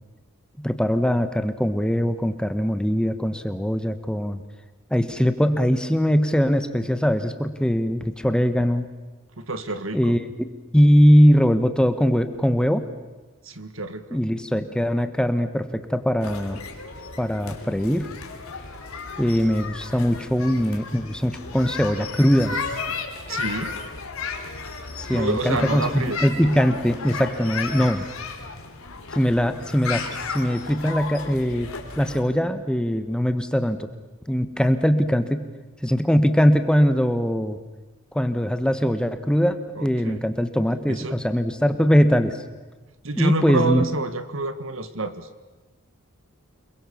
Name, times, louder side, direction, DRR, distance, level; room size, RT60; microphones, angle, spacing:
voice 1, 0.6-4.4 4.9-8.9 9.9-10.3 10.7-12.8 14.1-16.6 17.2-18.1 19.2-22.6 25.0-28.1 29.1-30.0 30.3-33.9 34.3-35.4 35.8-37.6 38.1-42.3 43.2-43.8, equal, 5° left, 10 dB, 1.0 m, -21 dB
voice 2, 9.4-10.1 13.4-14.2 23.3-23.7 25.1-26.2 39.8-40.2 40.9-41.2 43.0-45.3, right 2 dB, 70° right, 11 dB, 1.7 m, -28 dB
sound 1, 16.2-32.2, left 4 dB, 85° left, 3.2 m, -34 dB
28.5 x 21.5 x 7.1 m, 1.2 s
head